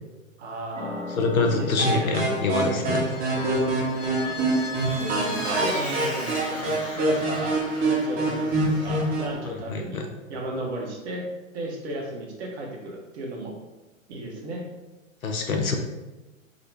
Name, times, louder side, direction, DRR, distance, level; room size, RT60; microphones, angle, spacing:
voice 1, 0.4-1.1 1.4-2.1 3.3-3.5 4.2-4.5 4.9-10.0 10.3-11.3 11.5-13.5 14.1-14.6, right 1 dB, 50° right, -1 dB, 1.0 m, -34 dB
sound 1, 0.7-7.9, left 3 dB, 65° left, 1.2 m, -41 dB
voice 2, 1.1-3.1 9.5-10.0 15.2-15.8, left 3 dB, 90° left, 3 dB, 0.7 m, -25 dB
sound 2, 1.8-9.3, right 2 dB, 25° right, 0.8 m, -26 dB
Vehicle, 2.9-9.2, left 2 dB, 15° left, 0.6 m, -37 dB
3.8 x 2.1 x 3.2 m, 1.1 s
hypercardioid pair, 115°, 41 cm